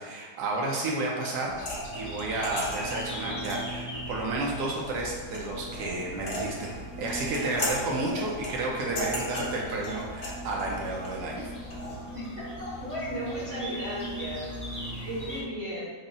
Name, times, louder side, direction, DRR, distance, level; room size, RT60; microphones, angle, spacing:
voice 1, 0.0-1.5 1.9-6.7 7.0-11.5, right 2 dB, 85° right, -2 dB, 1.3 m, -31 dB
sound 1, 1.5-12.0, left 1 dB, 50° left, 0.8 m, -38 dB
sound 2, 1.6-15.4, equal, 25° left, 0.4 m, -40 dB
voice 2, 12.1-15.9, equal, 55° right, -7 dB, 1.1 m, -35 dB
3.8 x 2.1 x 3.9 m, 1.4 s
omnidirectional pair, 1.7 m